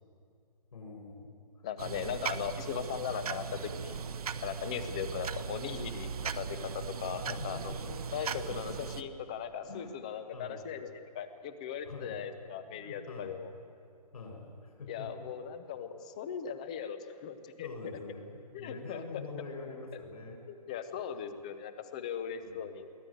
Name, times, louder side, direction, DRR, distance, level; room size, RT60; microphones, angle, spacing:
voice 1, 0.7-1.3 1.6-2.1 4.7-4.8 7.1-8.1 8.5-8.9 9.6-9.9 10.3-10.6 11.8-12.3 12.7-13.5 14.1-15.2 17.6-20.4 22.4-22.7, left 3 dB, 65° left, 1 dB, 7.6 m, -45 dB
voice 2, 1.6-4.0 4.4-7.8 8.1-10.9 11.1-13.5 14.9-17.7 18.5-19.0 20.5-22.8, left 8 dB, 10° left, 10 dB, 0.5 m, -39 dB
sound 1, 1.8-9.0, right 6 dB, 65° right, 1.1 m, -38 dB
23.5 x 17.0 x 9.1 m, 2.4 s
hypercardioid pair, 175°, 21 cm